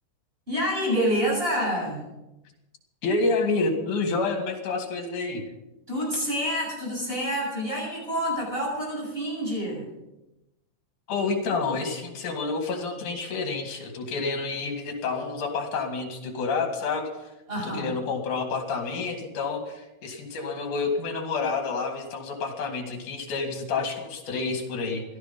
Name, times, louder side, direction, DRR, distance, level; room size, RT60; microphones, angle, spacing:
voice 1, 0.5-2.0 5.9-9.9 17.5-17.9, equal, 15° right, -3 dB, 7.6 m, -27 dB
voice 2, 3.0-5.4 11.1-17.1 17.6-25.0, left 4 dB, 75° left, 4 dB, 3.7 m, -29 dB
17.0 x 13.0 x 5.4 m, 0.96 s
omnidirectional pair, 3.6 m